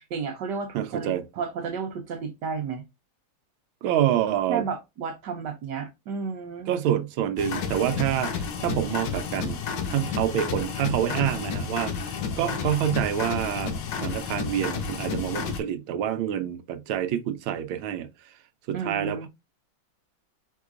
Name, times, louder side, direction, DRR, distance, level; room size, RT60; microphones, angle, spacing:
voice 1, 0.0-2.8 4.5-6.7 18.7-19.3, right 5 dB, 65° right, 1.3 m, -32 dB
voice 2, 0.7-1.2 3.8-4.6 6.7-9.6 9.9-18.1 18.7-19.3, right 10 dB, 85° right, 1.4 m, -27 dB
sound 1, 7.4-15.6, left 6 dB, 70° left, 1.4 m, -31 dB
4.8 x 3.7 x 2.4 m
omnidirectional pair, 2.2 m